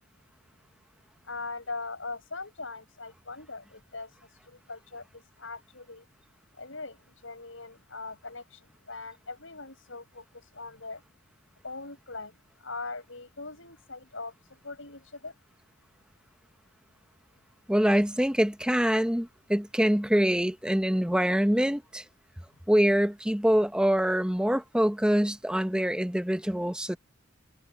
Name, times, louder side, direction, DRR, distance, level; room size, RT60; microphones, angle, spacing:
voice 1, 1.3-4.1 4.7-5.0 5.4-6.0 6.6-7.0 7.2-8.6 8.9-11.0 11.6-12.3 12.6-14.3 14.6-15.3, left 3 dB, 75° left, 7.7 m, -40 dB
voice 2, 17.7-22.0 22.7-27.0, equal, 5° right, 0.8 m, -25 dB
head